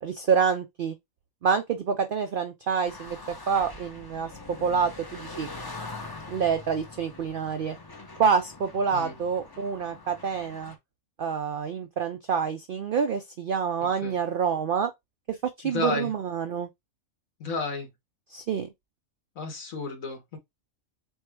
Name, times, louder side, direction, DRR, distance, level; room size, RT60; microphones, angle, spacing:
voice 1, 0.0-1.0 1.4-3.2 3.5-5.5 6.3-7.8 8.2-10.7 11.2-14.9 15.3-16.7 18.3-18.7, right 6 dB, 80° right, 0.4 m, -27 dB
sound 1, 2.8-10.8, left 3 dB, 30° left, 0.4 m, -43 dB
voice 2, 13.8-14.2 15.6-16.1 17.4-17.9 19.4-20.4, left 3 dB, 70° left, 1.7 m, -32 dB
4.5 x 2.1 x 4.5 m
omnidirectional pair, 1.5 m